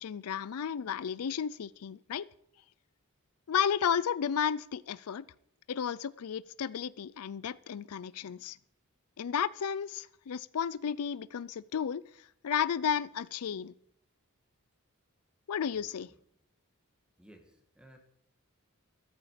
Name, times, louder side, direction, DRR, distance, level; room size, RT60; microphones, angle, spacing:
voice 1, 0.0-2.3 3.5-5.2 5.7-8.6 9.2-13.7 15.5-16.1, left 8 dB, 80° left, 19 dB, 0.4 m, -33 dB
voice 2, 17.2-18.0, right 1 dB, 5° right, 4 dB, 2.1 m, -57 dB
14.5 x 13.5 x 5.0 m, 0.73 s
head